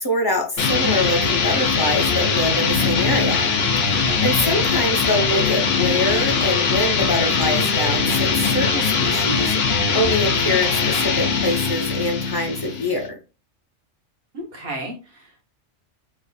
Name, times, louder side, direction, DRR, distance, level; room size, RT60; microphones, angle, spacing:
voice 1, 0.0-3.5 3.9-9.5 9.9-13.2, left 1 dB, 25° left, 2 dB, 0.6 m, -24 dB
sound 1, 0.6-13.1, left 5 dB, 65° left, 1.0 m, -21 dB
voice 2, 4.5-4.9 14.3-15.4, right 1 dB, 55° right, 1 dB, 1.2 m, -34 dB
3.2 x 2.4 x 3.9 m, 0.31 s
omnidirectional pair, 1.2 m